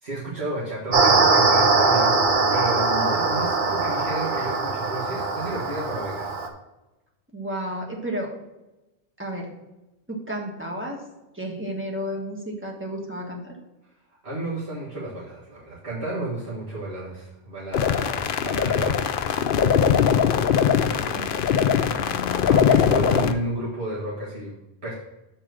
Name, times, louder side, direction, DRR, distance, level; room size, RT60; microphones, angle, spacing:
voice 1, 0.0-2.2 2.5-6.3 14.2-19.7 20.6-24.9, right 2 dB, 85° right, -7 dB, 1.9 m, -32 dB
sound 1, 0.9-6.5, right 3 dB, 55° right, 1.0 m, -21 dB
voice 2, 7.3-8.3 9.2-9.5 10.1-11.0 11.3-13.6 21.1-22.6, equal, 10° right, -1 dB, 1.4 m, -33 dB
sound 2, 17.7-23.3, left 8 dB, 65° left, 0.7 m, -21 dB
6.7 x 4.3 x 6.2 m, 1.0 s
omnidirectional pair, 1.0 m